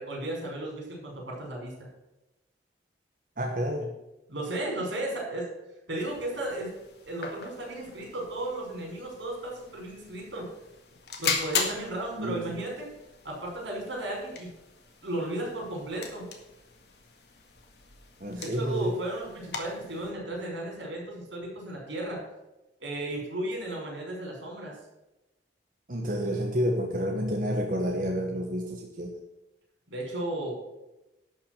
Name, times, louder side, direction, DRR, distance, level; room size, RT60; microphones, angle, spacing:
voice 1, 0.0-1.7 4.3-5.5 5.9-6.7 7.1-10.5 11.2-12.9 13.2-14.5 15.0-16.3 18.4-22.2 22.8-24.8 29.9-30.5, right 1 dB, 90° right, -1 dB, 5.5 m, -34 dB
voice 2, 3.4-3.9 12.2-12.6 18.2-18.9 25.9-29.2, equal, 50° right, 1 dB, 1.3 m, -29 dB
sound 1, 6.0-20.1, left 5 dB, 60° left, 1.9 m, -39 dB
12.0 x 6.0 x 7.9 m, 0.98 s
head